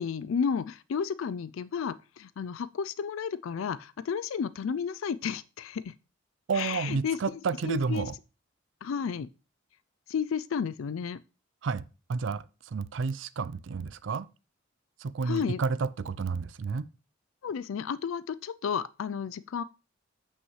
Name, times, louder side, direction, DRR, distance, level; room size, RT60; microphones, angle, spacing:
voice 1, 0.0-5.9 6.5-7.2 7.6-8.1 8.8-9.3 10.1-11.2 15.2-15.6 17.4-19.6, left 6 dB, 85° left, 0.4 m, -32 dB
voice 2, 6.5-8.2 11.6-11.8 12.1-14.3 15.0-16.8, right 5 dB, 65° right, 0.4 m, -31 dB
7.8 x 6.2 x 3.1 m
head